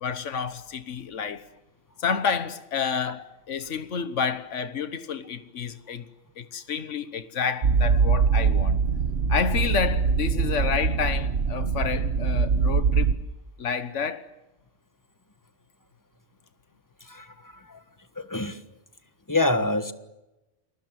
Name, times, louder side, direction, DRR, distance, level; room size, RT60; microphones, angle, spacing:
voice 1, 0.0-1.4 2.0-6.0 6.4-8.8 9.3-13.2 13.6-14.3, left 6 dB, 85° left, 1.5 m, -29 dB
sound 1, 7.6-13.2, right 5 dB, 65° right, 1.4 m, -23 dB
voice 2, 18.2-18.6 19.3-19.9, left 2 dB, 15° left, 1.4 m, -25 dB
29.0 x 20.5 x 7.6 m
omnidirectional pair, 1.2 m